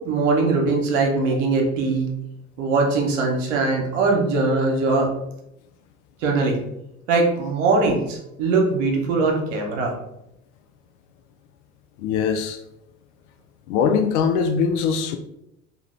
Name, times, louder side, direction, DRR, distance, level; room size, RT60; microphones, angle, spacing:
voice 1, 0.0-2.1 2.6-5.1 6.2-6.6 7.1-9.9, right 3 dB, 65° right, 0.9 m, -21 dB
voice 2, 12.0-12.6 13.7-15.2, left 6 dB, 55° left, 0.5 m, -21 dB
2.7 x 2.4 x 3.2 m
figure-of-eight pair, 65°, 41 cm